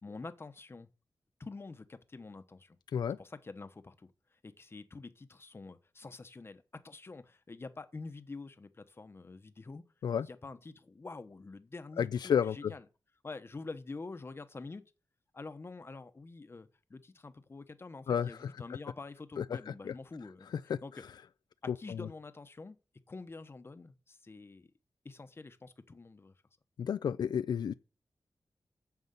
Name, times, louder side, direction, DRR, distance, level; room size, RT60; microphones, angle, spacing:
voice 1, 0.0-0.9 1.4-2.8 3.2-9.8 10.3-12.8 13.2-14.8 15.3-20.5 20.8-20.9 21.6-22.8 23.1-24.7 25.0-26.3, left 3 dB, 35° left, 1.0 m, -47 dB
voice 2, 12.0-12.7 18.1-18.5 19.4-19.6 19.8-19.9 20.7-20.8 21.7-22.1 26.8-27.7, left 8 dB, 85° left, 0.4 m, -31 dB
9.5 x 7.1 x 6.8 m
wide cardioid pair, 100°, 7 cm